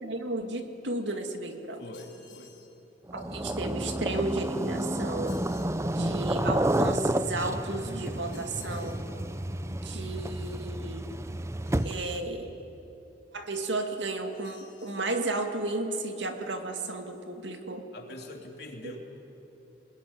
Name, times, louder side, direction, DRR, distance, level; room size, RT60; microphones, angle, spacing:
voice 1, 0.0-1.8 3.1-5.3 5.9-9.0 9.7-11.0 11.8-12.5 13.3-17.9 18.8-19.0, right 2 dB, 80° right, 5 dB, 2.3 m, -33 dB
voice 2, 1.8-2.5 17.9-19.0, left 1 dB, 60° left, 1 dB, 3.3 m, -43 dB
sound 1, 1.9-2.7 5.3-5.8 8.3-9.0 11.7-12.3 14.3-15.1, left 8 dB, 85° left, 5.6 m, -55 dB
sound 2, 3.1-12.2, right 1 dB, 15° right, 0.6 m, -30 dB
26.0 x 20.5 x 9.8 m, 3.0 s
head